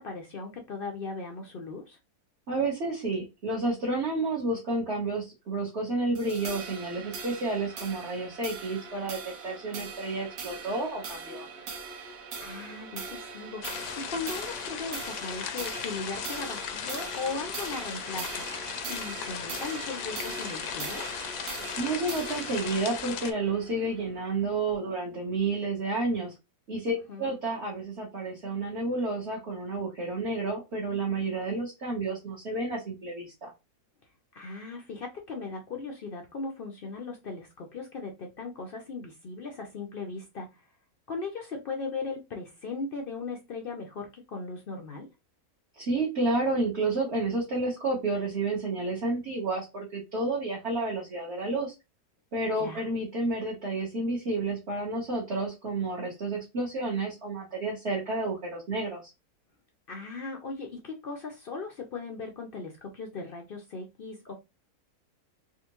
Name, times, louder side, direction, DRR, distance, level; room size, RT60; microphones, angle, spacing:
voice 1, 0.0-2.0 12.4-21.1 26.9-27.3 34.3-40.6 41.1-45.1 52.5-52.8 59.9-64.3, left 4 dB, 65° left, 2 dB, 0.5 m, -38 dB
voice 2, 2.5-11.5 21.8-26.3 26.7-33.5 45.8-51.7 52.3-59.0, right 2 dB, 50° right, -4 dB, 1.2 m, -30 dB
sound 1, 6.2-24.8, right 5 dB, 85° right, 1.3 m, -41 dB
sound 2, 13.6-23.3, left 9 dB, 85° left, 1.1 m, -37 dB
3.5 x 2.5 x 2.9 m, 0.24 s
omnidirectional pair, 1.6 m